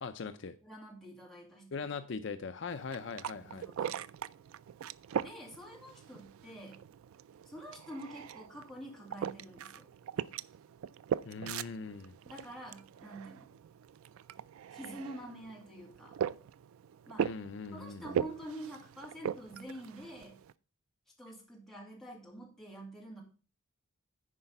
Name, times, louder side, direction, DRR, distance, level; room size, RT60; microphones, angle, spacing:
voice 1, 0.0-0.6 1.7-3.7 11.2-12.1 17.2-18.3, left 5 dB, 55° left, 10 dB, 0.5 m, -41 dB
voice 2, 0.6-1.7 3.4-4.0 5.2-6.8 7.5-9.9 12.2-13.5 14.7-16.2 17.1-17.4 17.7-20.4 21.2-23.2, right 1 dB, ahead, -2 dB, 2.1 m, -47 dB
sound 1, 2.7-20.5, right 8 dB, 75° right, 0.3 m, -40 dB
9.9 x 4.8 x 5.3 m, 0.37 s
head